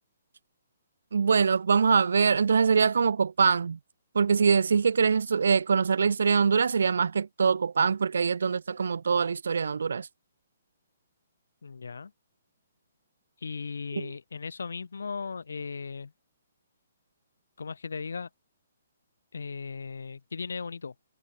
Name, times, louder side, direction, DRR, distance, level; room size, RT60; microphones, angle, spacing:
voice 1, 1.1-3.8 4.1-10.1 14.0-14.1, right 5 dB, 80° right, 0.3 m, -23 dB
voice 2, 11.6-12.1 13.4-16.1 17.6-18.3 19.3-20.9, left 5 dB, 90° left, 3.9 m, -37 dB
hypercardioid pair, 155°, 0 cm